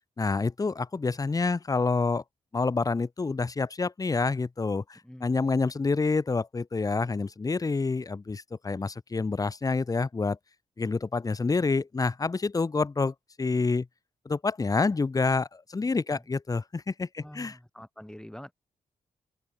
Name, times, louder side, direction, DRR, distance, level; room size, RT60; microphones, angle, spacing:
voice 1, 0.2-2.2 2.5-10.4 10.8-13.9 14.3-17.6, left 4 dB, 25° left, 0.8 m, -28 dB
voice 2, 5.0-5.4 16.1-16.2 17.2-18.5, equal, 5° left, 4.3 m, -46 dB
open air
cardioid pair, 85°, 14 cm